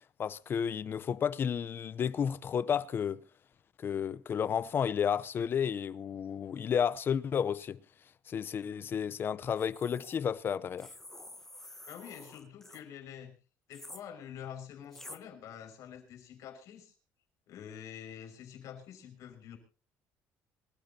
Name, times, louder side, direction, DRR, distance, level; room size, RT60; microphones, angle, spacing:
voice 1, 0.2-3.2 3.8-7.8 8.3-10.9, left 8 dB, 35° left, 0.7 m, -32 dB
sound 1, 9.5-10.2 10.8-12.8 13.7-14.0 14.9-15.2, left 1 dB, 5° left, 1.1 m, -49 dB
voice 2, 11.9-13.3 13.7-16.9 17.5-19.6, left 9 dB, 65° left, 5.9 m, -47 dB
26.0 x 13.5 x 2.9 m
cardioid pair, 135°, 6 cm